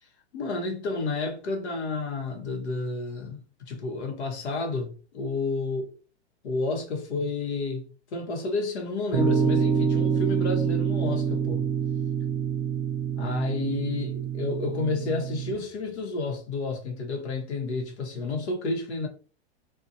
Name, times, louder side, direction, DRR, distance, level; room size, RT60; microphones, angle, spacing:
voice 1, 0.3-5.9 6.4-7.9 8.1-11.7 13.2-19.1, left 3 dB, 90° left, 0.9 m, -31 dB
sound 1, 9.1-15.5, right 7 dB, 20° right, 0.6 m, -26 dB
2.6 x 2.3 x 2.6 m
hypercardioid pair, 155°, 33 cm